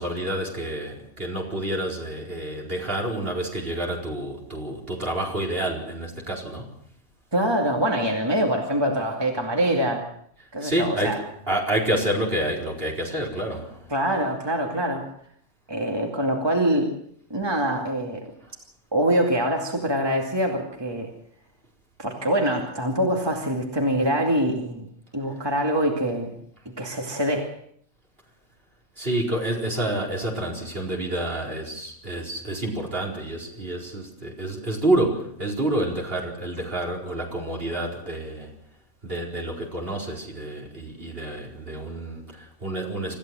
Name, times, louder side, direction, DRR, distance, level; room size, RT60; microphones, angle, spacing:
voice 1, 0.0-6.7 10.6-13.9 18.4-18.5 29.0-38.5 39.0-43.2, right 1 dB, 50° right, 0 dB, 4.9 m, -28 dB
voice 2, 7.3-10.1 10.5-11.2 13.9-15.0 15.7-16.9 17.3-18.3 18.9-21.1 22.0-24.9 25.1-26.3 26.8-27.5, right 1 dB, 20° right, 1 dB, 2.5 m, -24 dB
26.0 x 15.0 x 7.7 m, 0.67 s
omnidirectional pair, 1.3 m